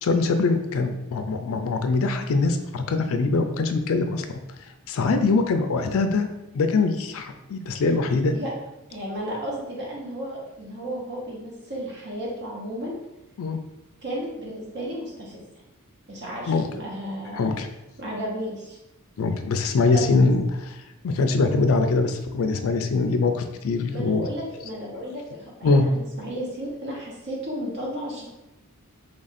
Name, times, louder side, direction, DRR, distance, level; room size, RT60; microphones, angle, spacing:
voice 1, 0.0-4.3 4.9-6.3 6.5-8.3 13.4-13.6 16.5-16.7 17.3-17.7 19.2-20.7 21.0-24.3 25.6-25.8, left 3 dB, 65° left, 7 dB, 0.4 m, -23 dB
voice 2, 8.9-12.9 14.0-15.4 16.1-17.5 18.0-18.8 19.9-20.1 23.9-28.3, equal, 50° right, -2 dB, 1.1 m, -33 dB
3.3 x 2.5 x 4.1 m, 0.94 s
head